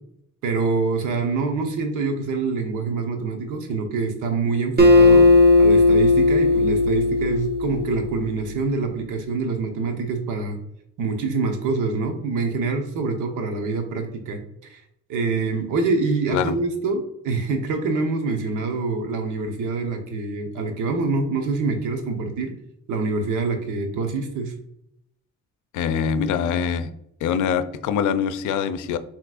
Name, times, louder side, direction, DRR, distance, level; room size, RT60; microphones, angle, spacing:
voice 1, 0.4-5.3 5.6-10.6 11.0-14.4 14.7-14.8 15.1-22.5 22.9-24.5, right 4 dB, 85° right, 4 dB, 0.9 m, -25 dB
Acoustic guitar, 4.8-8.2, left 2 dB, 35° right, 1.1 m, -16 dB
voice 2, 25.7-26.9 27.2-29.0, left 7 dB, 80° left, 12 dB, 0.5 m, -23 dB
6.0 x 3.0 x 2.4 m, 0.78 s
cardioid pair, 90°, 30 cm